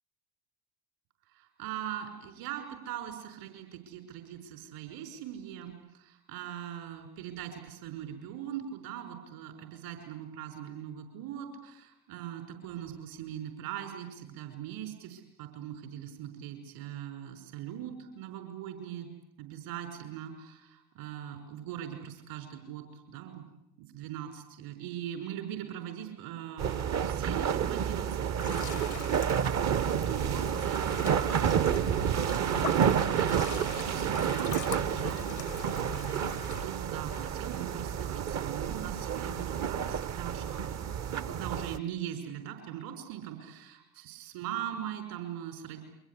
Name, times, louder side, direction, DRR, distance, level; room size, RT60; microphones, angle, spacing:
voice 1, 1.3-19.1 19.4-23.5 23.8-29.3 29.9-45.8, right 10 dB, 60° right, 6 dB, 5.6 m, -41 dB
sound 1, 26.6-41.8, right 8 dB, 35° right, 1.1 m, -30 dB
sound 2, 28.4-36.7, left 10 dB, 80° left, 1.1 m, -42 dB
29.0 x 24.0 x 8.5 m, 0.86 s
figure-of-eight pair, 65°, 47 cm